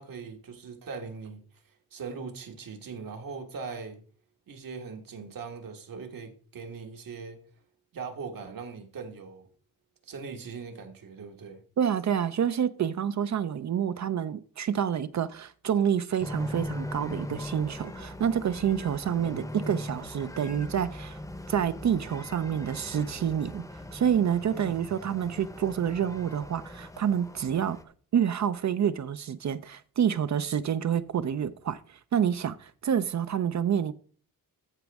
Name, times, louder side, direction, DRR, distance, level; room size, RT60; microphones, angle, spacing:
voice 1, 0.0-1.4 1.9-4.0 4.5-7.4 7.9-9.5 10.0-11.6 24.5-24.8, right 5 dB, 65° right, 1.7 m, -40 dB
voice 2, 11.8-21.2 21.5-27.8 28.1-33.9, right 8 dB, 50° right, 0.5 m, -28 dB
sound 1, 16.2-27.8, left 1 dB, 10° left, 0.8 m, -40 dB
14.0 x 5.1 x 3.5 m
wide cardioid pair, 145°, 36 cm